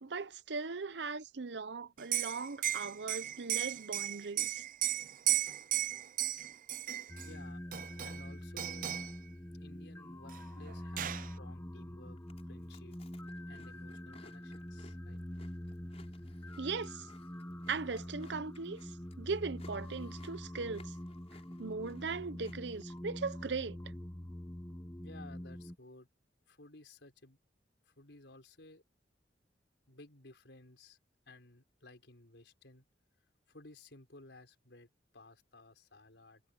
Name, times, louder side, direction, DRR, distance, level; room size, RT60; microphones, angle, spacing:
voice 1, 0.0-4.7 16.6-17.1 17.7-21.0 21.6-23.8, right 4 dB, 80° right, 0.8 m, -39 dB
Liquid, 2.0-7.3 7.7-8.3 8.6-9.1 10.3-10.4 10.7-11.3, right 13 dB, 50° right, 0.6 m, -35 dB
sound 1, 7.1-25.8, equal, 15° left, 1.4 m, -45 dB
voice 2, 7.2-7.6 8.0-8.9 9.6-12.2 12.5-13.0 13.5-15.2 25.0-26.1 26.5-27.4 27.9-28.8 29.9-31.0 31.3-32.9 33.5-36.4, left 2 dB, 85° left, 4.6 m, -56 dB
Chewing mastication, 12.2-23.0, left 3 dB, 35° left, 5.1 m, -62 dB
head